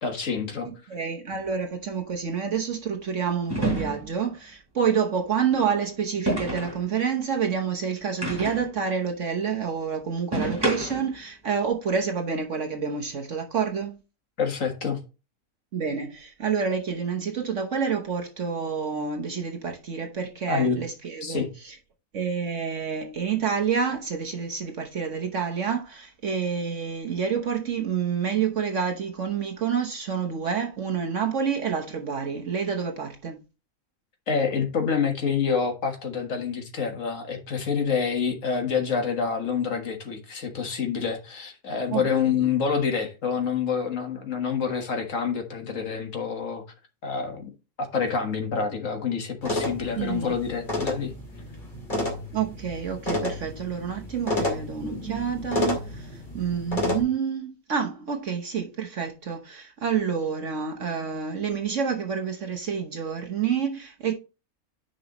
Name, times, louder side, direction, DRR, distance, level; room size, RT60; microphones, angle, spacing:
voice 1, 0.0-0.7 14.4-15.0 20.5-20.8 21.2-21.5 34.3-46.6 47.0-47.5 47.8-51.1, left 6 dB, 60° left, 1.9 m, -27 dB
voice 2, 0.7-14.0 15.7-21.8 22.1-33.4 41.9-42.0 42.4-42.5 50.0-50.4 52.3-64.1, right 6 dB, 60° right, 1.3 m, -28 dB
sound 1, 1.3-1.4 3.5-4.2 6.3-6.8 8.2-8.7 10.3-11.1, right 1 dB, 15° right, 3.5 m, -28 dB
sound 2, 49.4-57.0, left 2 dB, 35° left, 2.4 m, -30 dB
10.0 x 5.3 x 3.0 m
omnidirectional pair, 1.5 m